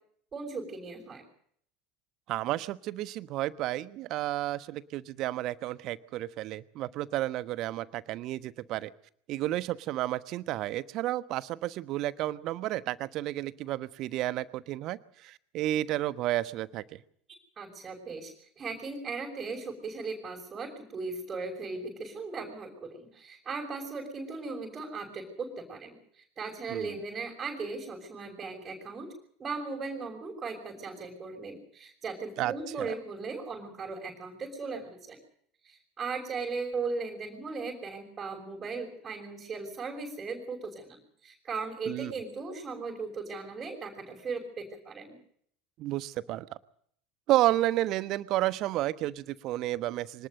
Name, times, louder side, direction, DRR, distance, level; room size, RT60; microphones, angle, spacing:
voice 1, 0.3-1.2 17.6-29.1 29.4-35.2 35.6-45.2, right 4 dB, 30° right, 0 dB, 6.2 m, -38 dB
voice 2, 2.3-8.9 9.3-16.8 26.7-27.0 32.4-32.5 32.8-32.9 41.9-42.1 45.8-46.4 47.3-50.3, right 15 dB, 50° right, 16 dB, 1.2 m, -31 dB
24.5 x 19.5 x 6.6 m, 0.64 s
figure-of-eight pair, 75°, 0 cm